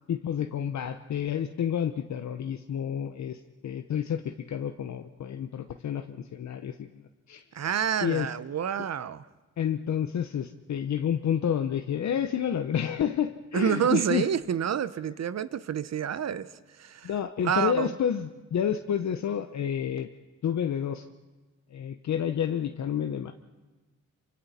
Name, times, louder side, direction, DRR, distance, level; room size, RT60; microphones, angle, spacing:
voice 1, 0.1-7.0 7.3-7.4 8.0-8.3 9.6-14.3 17.0-20.1 20.4-21.1 21.7-23.3, left 9 dB, 60° left, 0.8 m, -29 dB
voice 2, 7.5-9.2 13.5-16.5 16.8-17.1 17.4-17.9, right 8 dB, 55° right, 0.8 m, -28 dB
27.5 x 24.5 x 4.2 m
cardioid pair, 100°, 32 cm